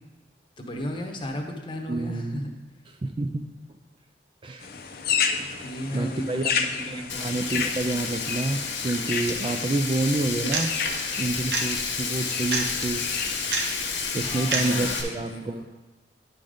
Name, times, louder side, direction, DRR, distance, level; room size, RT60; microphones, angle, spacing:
voice 1, 0.6-2.5 5.6-7.5 14.1-15.6, equal, 25° left, 2 dB, 0.9 m, -35 dB
voice 2, 1.9-2.4 3.0-3.4 4.4-4.7 5.9-6.5 6.9-10.7 11.2-13.0 14.1-15.6, right 2 dB, 25° right, 6 dB, 0.3 m, -28 dB
sound 1, 4.6-14.5, left 6 dB, 55° left, 0.6 m, -32 dB
Frying (food), 7.1-15.0, left 5 dB, 85° left, 1.2 m, -31 dB
sound 2, 10.5-10.6 11.5-11.6 12.5-12.7 13.5-13.6 14.5-14.7, right 3 dB, 65° right, 0.9 m, -25 dB
10.5 x 3.9 x 4.9 m, 1.1 s
head